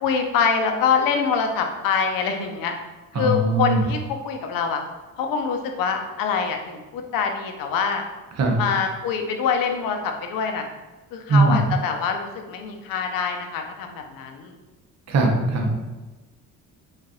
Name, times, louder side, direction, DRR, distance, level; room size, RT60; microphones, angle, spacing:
voice 1, 0.0-2.7 3.2-4.8 5.2-8.0 8.6-10.6 11.1-14.5, left 6 dB, 80° left, 4 dB, 0.7 m, -25 dB
voice 2, 3.1-3.8 8.4-8.6 11.3-11.6 15.1-15.8, right 2 dB, 50° right, 1 dB, 0.9 m, -20 dB
4.7 x 2.5 x 3.0 m, 1.2 s
cardioid pair, 95°, 33 cm